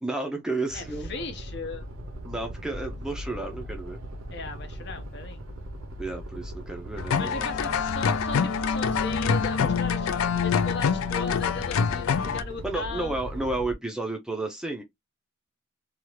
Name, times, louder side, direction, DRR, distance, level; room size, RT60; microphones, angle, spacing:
voice 1, 0.0-1.1 2.2-4.0 6.0-7.5 12.6-14.8, right 2 dB, 5° right, 0.5 m, -32 dB
voice 2, 0.7-1.9 4.3-5.5 7.2-10.1 10.4-13.2, left 3 dB, 55° left, 0.7 m, -37 dB
sound 1, 0.7-13.7, equal, 85° right, 0.7 m, -39 dB
sound 2, 7.0-12.4, left 6 dB, 75° left, 0.4 m, -25 dB
2.8 x 2.4 x 3.1 m
head